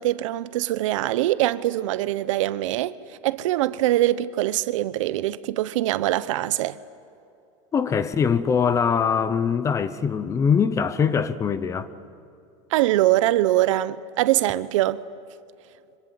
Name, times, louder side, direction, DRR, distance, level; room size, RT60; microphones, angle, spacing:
voice 1, 0.0-3.0 3.2-6.8 12.7-15.0, right 15 dB, 90° right, 0.9 m, -23 dB
voice 2, 7.7-11.9, left 6 dB, 20° left, 0.8 m, -22 dB
25.5 x 24.0 x 8.3 m
supercardioid pair, 160°, 16 cm